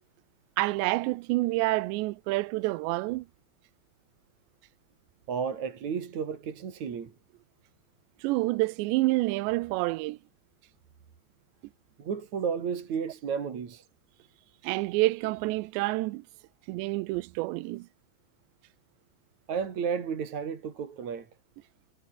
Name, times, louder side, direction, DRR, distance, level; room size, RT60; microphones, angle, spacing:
voice 1, 0.6-3.3 8.2-10.2 14.6-16.2 16.7-17.9, right 20 dB, 85° right, 2.9 m, -28 dB
voice 2, 5.3-7.1 12.0-13.8 19.5-21.3, right 6 dB, 45° right, 3.6 m, -32 dB
omnidirectional pair, 5.1 m